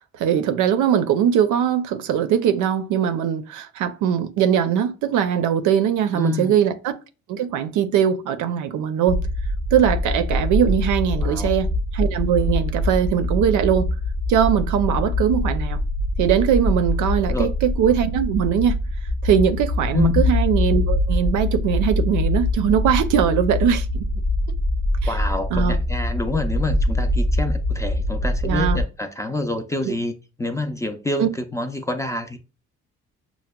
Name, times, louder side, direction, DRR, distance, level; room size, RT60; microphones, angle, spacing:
voice 1, 0.2-7.0 7.3-9.2 9.7-13.9 14.3-15.8 16.2-18.8 19.2-24.1 25.5-25.8 28.4-28.8 29.9-30.0 31.2-31.3, right 9 dB, 80° right, 0.5 m, -21 dB
voice 2, 6.1-6.5 11.2-11.5 17.2-17.5 19.9-20.2 25.1-32.4, left 2 dB, 10° left, 0.4 m, -27 dB
sound 1, 9.1-28.8, left 1 dB, 80° left, 0.9 m, -23 dB
5.7 x 2.1 x 2.2 m
cardioid pair, 90°, 30 cm